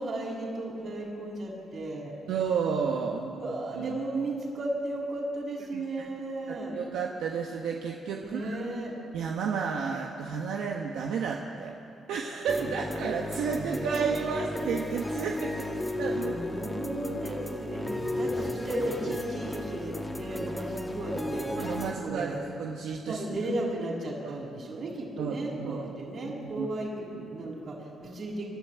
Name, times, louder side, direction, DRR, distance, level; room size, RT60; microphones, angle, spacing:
voice 1, 0.0-2.1 3.1-6.8 8.2-9.0 12.6-12.8 13.4-14.5 16.2-21.5 22.0-22.4 23.1-28.5, right 1 dB, 50° right, -3 dB, 7.5 m, -35 dB
voice 2, 2.3-3.3 3.8-4.0 5.7-5.8 6.5-8.7 9.1-11.7 12.1-15.7 16.0-16.3 21.6-23.2 24.2-24.3 25.2-25.8 26.4-26.7 27.3-27.5, right 6 dB, 80° right, 1 dB, 1.4 m, -32 dB
sound 1, 12.5-21.9, left 1 dB, 10° left, 2.0 m, -34 dB
25.0 x 12.5 x 9.5 m, 2.7 s
cardioid pair, 90°, 0 cm